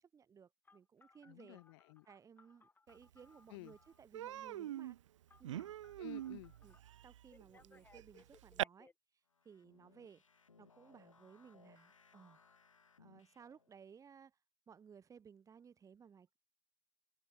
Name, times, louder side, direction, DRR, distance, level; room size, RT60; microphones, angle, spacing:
voice 1, 0.0-1.6 2.1-5.0 5.4-5.7 6.6-6.8 7.0-8.9 9.4-10.2 10.6-12.4 13.0-14.4 14.7-16.4, right 7 dB, 20° right, 1.5 m, -60 dB
Telephone, 0.6-4.0 5.3-6.8 7.3-8.9, left 4 dB, 10° left, 3.4 m, -67 dB
voice 2, 1.3-2.1 3.5-3.8 6.0-6.5, left 24 dB, 55° left, 4.3 m, -53 dB
Human voice, 3.1-3.2 3.5-3.7 4.1-8.6, right 12 dB, 70° right, 0.4 m, -44 dB
sound 1, 9.3-13.8, left 5 dB, 85° left, 2.5 m, -66 dB
figure-of-eight pair, 95°, 16 cm